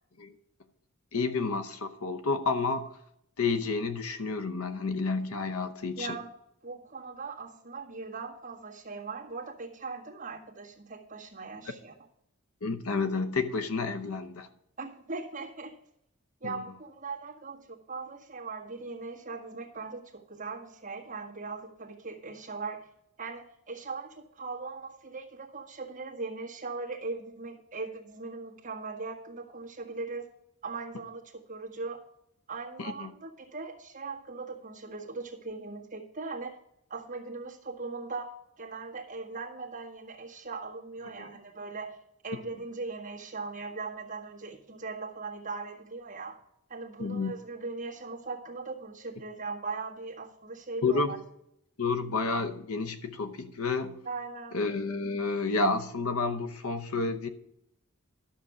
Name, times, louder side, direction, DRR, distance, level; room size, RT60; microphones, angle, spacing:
voice 1, 1.1-2.9 3.4-6.2 12.6-14.5 16.4-16.5 32.8-33.1 41.2-41.3 47.0-47.3 50.8-51.1 51.8-54.0 54.5-57.3, left 4 dB, 75° left, 10 dB, 0.9 m, -30 dB
voice 2, 6.0-6.3 6.6-11.9 14.8-15.8 16.4-22.9 23.2-30.3 30.6-32.0 32.5-36.5 36.9-42.0 42.2-46.4 46.7-51.2 54.0-54.6, right 3 dB, 35° right, -3 dB, 1.7 m, -39 dB
12.0 x 6.8 x 4.9 m, 0.77 s
head